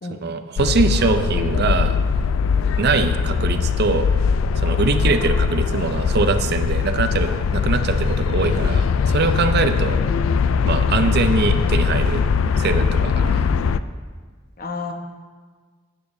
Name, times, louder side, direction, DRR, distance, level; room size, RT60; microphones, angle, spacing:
voice 1, 0.2-2.0 2.8-4.1 4.6-8.8 9.1-10.0 10.6-12.2 12.6-13.5, right 4 dB, 55° right, 9 dB, 0.5 m, -22 dB
sound 1, 0.6-13.8, left 5 dB, 90° left, 0.3 m, -20 dB
voice 2, 14.6-14.9, left 3 dB, 45° left, 3 dB, 1.1 m, -31 dB
13.5 x 8.5 x 2.7 m, 1.5 s
head